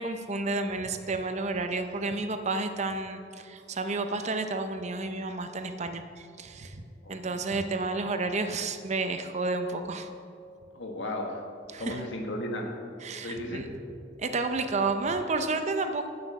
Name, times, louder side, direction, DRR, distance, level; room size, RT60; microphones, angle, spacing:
voice 1, 0.0-6.8 7.1-10.1 11.7-12.1 13.0-13.7 14.2-16.1, right 3 dB, 40° right, 8 dB, 0.6 m, -31 dB
voice 2, 7.0-7.4 10.7-11.4 11.8-12.7 13.2-13.7, left 1 dB, 80° left, 2 dB, 1.5 m, -35 dB
8.8 x 7.7 x 6.0 m, 2.4 s
head